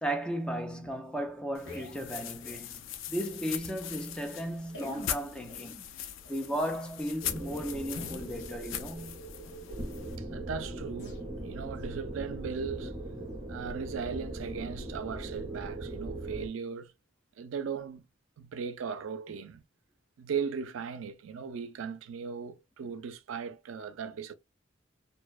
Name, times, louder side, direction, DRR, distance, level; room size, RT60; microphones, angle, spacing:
voice 1, 0.0-5.8 6.3-9.2, equal, 5° left, 0.4 m, -35 dB
sound 1, 1.2-3.4 3.6-3.7 3.9-4.1 4.7-9.7 10.1-10.5 10.9-11.2 11.7-12.0 12.5-12.6 13.3-13.4, left 2 dB, 65° left, 1.0 m, -49 dB
sound 2, 1.5-10.2, left 10 dB, 85° left, 0.4 m, -41 dB
sound 3, 7.2-16.5, right 2 dB, 30° right, 0.7 m, -40 dB
voice 2, 10.2-12.9 13.5-16.9 17.4-18.0 18.4-19.6 20.2-24.3, right 6 dB, 85° right, 0.4 m, -38 dB
2.6 x 2.1 x 2.3 m
head